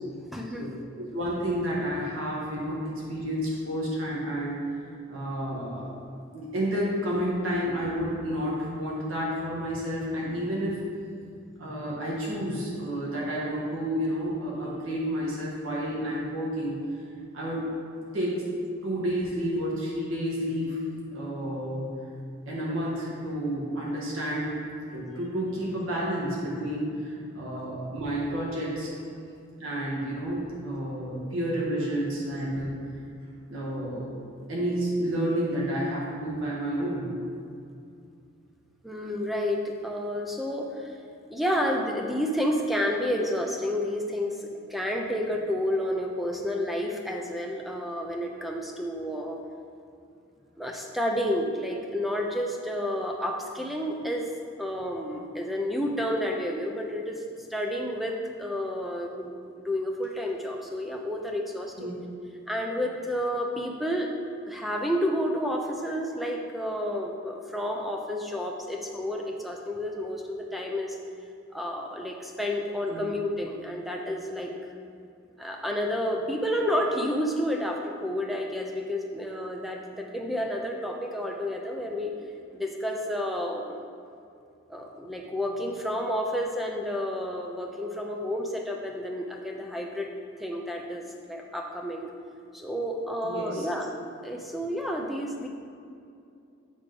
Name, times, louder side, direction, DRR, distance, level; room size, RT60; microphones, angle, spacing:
voice 1, 0.3-0.7 38.8-41.0 41.3-49.4 50.6-54.3 54.6-57.2 57.5-59.3 59.6-62.0 62.5-64.1 64.5-71.0 71.5-74.5 75.4-82.2 82.5-83.8 84.7-90.1 90.4-92.1 92.5-93.9 94.2-95.5, equal, ahead, 1 dB, 0.5 m, -30 dB
voice 2, 1.0-4.6 5.1-5.9 6.3-10.8 11.6-16.8 17.3-17.7 18.1-18.4 18.8-20.8 21.1-21.9 22.5-24.5 24.9-28.9 29.6-32.7 33.5-34.1 34.5-37.1 61.8-61.9 72.9-73.1 93.2-93.7, equal, 85° right, -6 dB, 1.6 m, -30 dB
8.3 x 3.6 x 5.2 m, 2.5 s
head